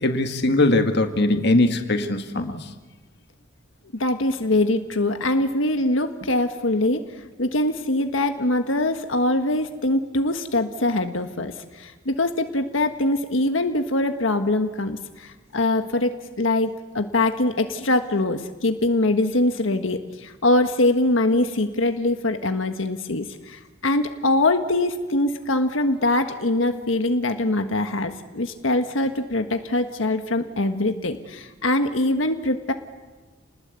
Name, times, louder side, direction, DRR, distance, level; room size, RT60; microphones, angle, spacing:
voice 1, 0.0-2.6, left 2 dB, 60° left, 6 dB, 2.0 m, -20 dB
voice 2, 4.0-7.0 7.4-32.7, left 2 dB, 90° left, 6 dB, 1.5 m, -23 dB
30.0 x 20.0 x 8.3 m, 1.3 s
head